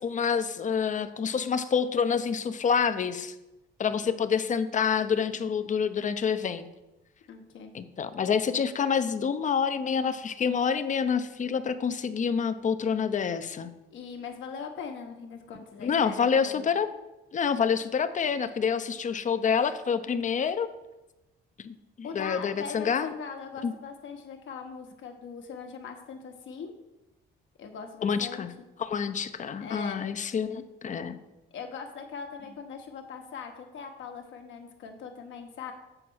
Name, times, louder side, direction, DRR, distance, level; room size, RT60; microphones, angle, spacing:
voice 1, 0.0-3.3 3.8-6.7 7.7-13.7 15.8-16.9 17.3-20.7 21.6-23.1 23.6-23.7 28.0-28.5 28.8-31.2, left 6 dB, 40° left, 11 dB, 0.6 m, -27 dB
voice 2, 7.3-7.7 13.9-16.7 22.0-26.7 27.6-28.5 29.6-30.0 31.5-35.7, left 6 dB, 75° left, 4 dB, 1.2 m, -41 dB
7.7 x 4.5 x 6.2 m, 0.99 s
cardioid pair, 90°, 20 cm